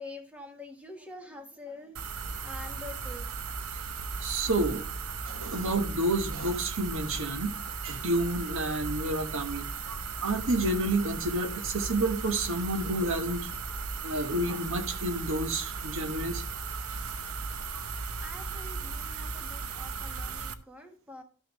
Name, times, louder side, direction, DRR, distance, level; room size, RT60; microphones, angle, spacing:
voice 1, 0.0-2.0 2.4-3.3 18.2-21.2, left 2 dB, 5° right, 1.5 m, -45 dB
sound 1, 2.0-20.5, right 5 dB, 85° right, 0.8 m, -36 dB
voice 2, 4.2-4.8 5.2-13.5 14.0-16.4 17.7-17.8, right 1 dB, 65° right, 1.3 m, -30 dB
12.0 x 6.2 x 3.1 m
head